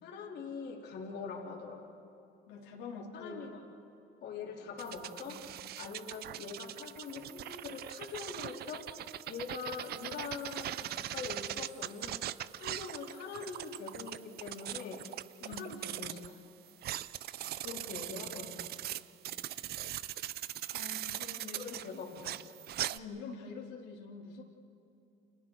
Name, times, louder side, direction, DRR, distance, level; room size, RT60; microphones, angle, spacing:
voice 1, 0.0-1.9 3.1-3.5 4.2-5.4 5.8-8.9 9.3-12.3 12.6-15.1 15.4-16.4 17.6-18.6 21.5-22.4, left 5 dB, 55° left, -1 dB, 3.5 m, -43 dB
voice 2, 2.5-3.5 5.3-5.4 15.4-15.7 17.7-17.8 20.7-22.2 22.9-24.4, left 4 dB, 90° left, -3 dB, 3.5 m, -46 dB
sound 1, 4.8-16.3 16.7-23.0, right 13 dB, 50° right, 0.6 m, -41 dB
29.5 x 28.5 x 4.7 m, 2.9 s
cardioid pair, 130°, 20 cm